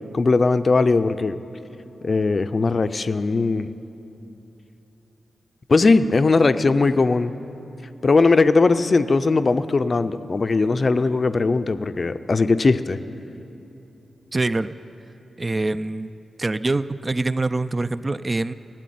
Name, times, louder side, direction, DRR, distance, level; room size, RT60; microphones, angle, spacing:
voice 1, 0.1-1.4 2.0-3.7 5.7-7.3 8.0-13.0, left 3 dB, 45° left, 12 dB, 0.5 m, -19 dB
voice 2, 14.3-14.7 15.4-16.1 16.4-18.5, right 2 dB, 30° right, 13 dB, 0.3 m, -24 dB
16.0 x 7.7 x 9.3 m, 3.0 s
cardioid pair, 80°, 0 cm